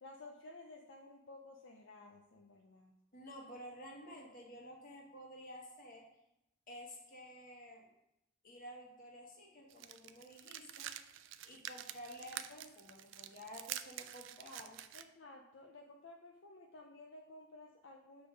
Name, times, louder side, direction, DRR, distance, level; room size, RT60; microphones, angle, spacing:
voice 1, 0.0-2.9 14.9-18.3, left 2 dB, 65° left, 1 dB, 0.5 m, -55 dB
voice 2, 3.1-6.1 6.7-7.9 8.4-10.9 11.4-14.8, equal, 45° left, -1 dB, 1.4 m, -52 dB
sound 1, 9.7-15.0, right 11 dB, 65° right, 0.3 m, -47 dB
6.8 x 3.4 x 5.2 m, 0.87 s
head